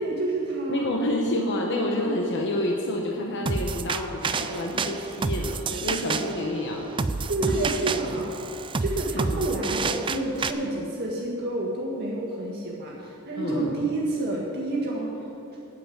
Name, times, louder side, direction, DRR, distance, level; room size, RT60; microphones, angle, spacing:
voice 1, 0.0-0.9 7.3-8.3 8.8-15.2, right 2 dB, 50° right, -4 dB, 1.8 m, -29 dB
voice 2, 0.7-7.8 8.0-8.2 9.1-9.6 13.4-13.9, left 1 dB, 55° left, 0 dB, 1.1 m, -29 dB
sound 1, 3.5-10.5, right 4 dB, 25° right, 0.4 m, -29 dB
9.3 x 7.7 x 9.2 m, 2.7 s
head